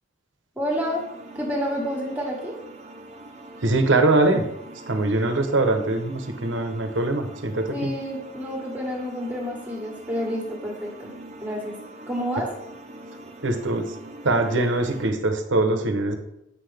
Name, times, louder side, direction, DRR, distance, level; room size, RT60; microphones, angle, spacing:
voice 1, 0.5-1.0 1.3-2.6 7.7-11.1 11.4-11.8 12.1-12.5, equal, 10° right, -2 dB, 1.6 m, -29 dB
sound 1, 0.7-15.1, right 2 dB, 35° right, 0.8 m, -43 dB
voice 2, 3.6-4.5 4.9-7.9 13.4-13.9 14.2-16.2, right 2 dB, 70° right, 7 dB, 0.9 m, -22 dB
8.3 x 5.8 x 3.4 m, 0.82 s
head